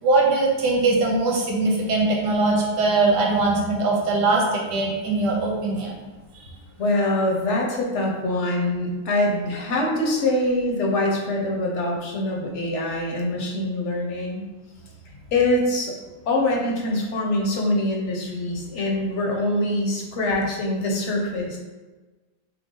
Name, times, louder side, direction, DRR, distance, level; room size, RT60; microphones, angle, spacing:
voice 1, 0.0-6.0 6.3-6.4, right 3 dB, 90° right, -1 dB, 1.6 m, -21 dB
voice 2, 6.8-14.4 15.3-16.0 16.3-21.6, left 1 dB, 50° left, -1 dB, 1.0 m, -24 dB
6.1 x 2.2 x 3.8 m, 1.2 s
omnidirectional pair, 1.8 m